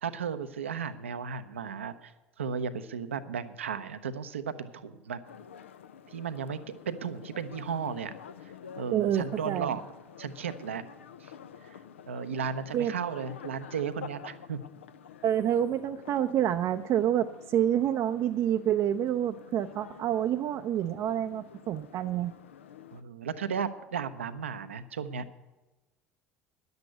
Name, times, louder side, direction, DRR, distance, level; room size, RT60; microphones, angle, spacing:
voice 1, 0.0-2.1 2.4-5.2 6.1-6.6 6.9-8.1 8.8-9.8 10.2-10.8 11.2-11.3 12.1-14.6 22.9-25.2, right 6 dB, 85° right, 11 dB, 0.7 m, -34 dB
sound 1, 5.2-23.0, left 8 dB, 85° left, 0.5 m, -49 dB
voice 2, 8.9-9.7 12.7-12.9 15.2-22.3, right 10 dB, 50° right, 7 dB, 0.5 m, -28 dB
10.5 x 8.0 x 8.2 m, 1.1 s
hypercardioid pair, 65°, 7 cm